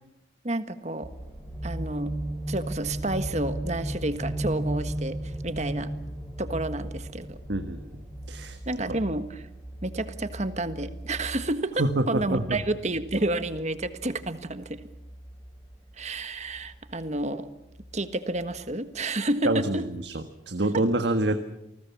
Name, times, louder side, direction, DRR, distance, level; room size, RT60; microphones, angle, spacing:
voice 1, 0.4-1.1 1.6-2.1 2.5-5.9 6.4-7.4 8.7-9.4 9.8-14.8 16.0-17.5 17.9-19.8, right 2 dB, 35° right, 10 dB, 1.5 m, -30 dB
sound 1, 1.0-18.9 19.3-19.4, right 1 dB, 10° left, 6.2 m, -37 dB
voice 2, 7.5-7.9 8.3-8.6 8.9-9.0 11.8-12.6 19.4-21.4, right 2 dB, 65° right, 7 dB, 1.5 m, -26 dB
28.5 x 20.0 x 7.2 m, 0.88 s
head